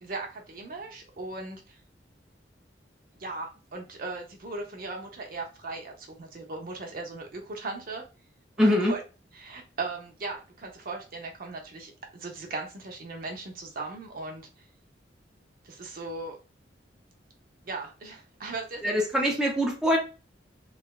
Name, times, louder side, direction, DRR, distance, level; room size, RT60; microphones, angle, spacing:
voice 1, 0.0-1.8 3.2-8.0 8.6-9.0 9.3-14.5 15.6-16.4 17.6-19.3, right 3 dB, 50° right, 2 dB, 0.7 m, -38 dB
voice 2, 8.6-8.9 18.8-20.0, equal, 5° right, -1 dB, 0.5 m, -23 dB
3.2 x 2.1 x 2.3 m, 0.32 s
head